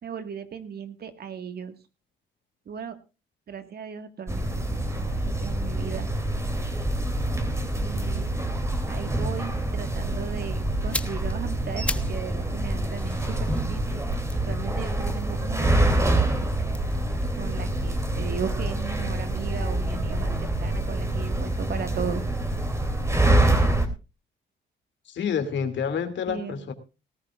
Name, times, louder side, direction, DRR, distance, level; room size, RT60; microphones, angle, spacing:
voice 1, 0.0-1.8 2.7-3.0 3.5-6.1 7.7-8.4 8.9-14.0 14.5-16.1 16.4-16.5 17.4-22.2 26.3-26.6, right 7 dB, 50° right, 9 dB, 1.9 m, -37 dB
sound 1, 4.3-23.9, right 1 dB, 15° right, 3.0 m, -26 dB
sound 2, 10.7-12.3 12.6-15.8 16.6-18.7 18.9-19.1, left 1 dB, 5° left, 0.9 m, -38 dB
voice 2, 25.1-26.7, left 7 dB, 65° left, 8 dB, 2.6 m, -28 dB
19.0 x 13.5 x 2.5 m, 0.30 s
cardioid pair, 90°, 20 cm